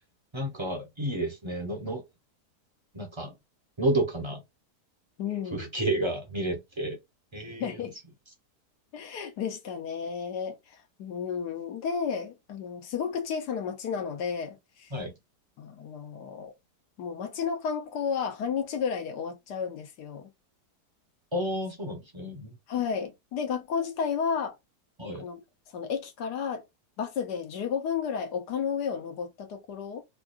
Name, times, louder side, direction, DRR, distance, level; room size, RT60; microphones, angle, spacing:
voice 1, 0.3-2.0 2.9-3.3 3.8-4.4 5.5-7.0 7.3-7.7 14.9-15.1 21.3-22.6 25.0-25.3, right 1 dB, 25° right, 0.6 m, -30 dB
voice 2, 5.2-5.7 7.6-7.9 8.9-14.9 15.6-16.5 17.0-20.3 22.7-24.6 25.2-25.4 25.7-26.6 27.0-30.0, left 6 dB, 75° left, 1.3 m, -32 dB
4.6 x 2.3 x 2.4 m
omnidirectional pair, 1.8 m